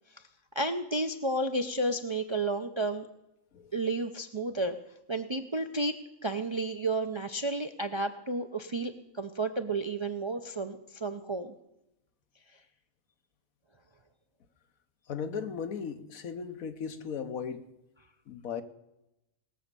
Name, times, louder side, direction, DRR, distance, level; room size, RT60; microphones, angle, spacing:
voice 1, 0.5-3.1 3.7-4.8 5.1-11.5, right 2 dB, 40° right, 0.4 m, -32 dB
voice 2, 15.1-17.6 18.3-18.6, left 6 dB, 85° left, 1.4 m, -36 dB
19.5 x 7.2 x 6.8 m
omnidirectional pair, 1.4 m